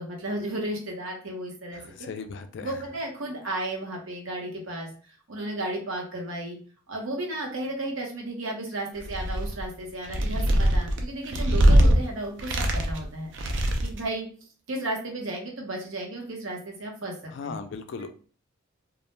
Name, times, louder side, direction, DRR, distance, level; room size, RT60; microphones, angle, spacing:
voice 1, 0.0-2.1 2.6-4.9 5.3-6.6 6.9-13.3 13.8-14.3 14.7-17.1 17.4-17.6, right 1 dB, 75° right, 0 dB, 0.8 m, -33 dB
voice 2, 1.7-2.8 17.3-18.1, left 5 dB, 60° left, 8 dB, 0.3 m, -38 dB
sound 1, 9.0-9.6 10.0-12.0 12.4-13.0 13.3-14.0, right 1 dB, 60° right, 0.4 m, -21 dB
2.3 x 2.1 x 3.0 m, 0.42 s
head